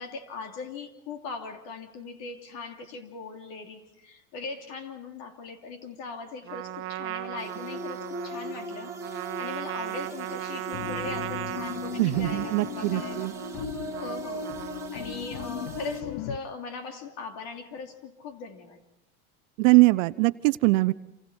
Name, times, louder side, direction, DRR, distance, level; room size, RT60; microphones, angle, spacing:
voice 1, 0.0-13.3 14.0-14.5 14.9-18.8, left 4 dB, 55° left, 4 dB, 3.1 m, -40 dB
Trumpet, 6.5-15.1, right 14 dB, 30° right, 1.4 m, -37 dB
sound 1, 7.4-16.0, right 1 dB, 5° right, 2.6 m, -40 dB
sound 2, 10.7-16.4, left 11 dB, 70° left, 0.9 m, -37 dB
voice 2, 12.0-13.3 19.6-20.9, right 22 dB, 55° right, 15 dB, 0.7 m, -22 dB
28.0 x 25.0 x 4.5 m, 0.87 s
supercardioid pair, 140°, 45 cm